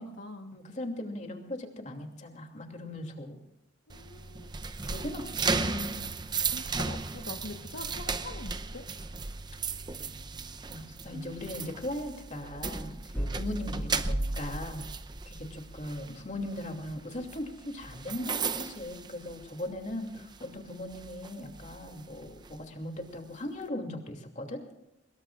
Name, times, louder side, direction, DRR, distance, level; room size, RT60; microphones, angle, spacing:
voice 1, 0.0-0.6 3.9-4.5 6.5-8.9 13.4-13.7, left 2 dB, 80° left, 5 dB, 1.3 m, -44 dB
voice 2, 0.5-3.4 4.8-6.0 10.7-14.9 15.2-24.6, left 1 dB, 40° left, 3 dB, 2.8 m, -39 dB
sound 1, 3.9-19.8 20.1-20.4 20.9-22.6, right 4 dB, 25° right, 0.7 m, -35 dB
sound 2, 13.1-17.0, right 1 dB, 10° left, 3.0 m, -40 dB
24.0 x 21.0 x 2.5 m, 0.89 s
head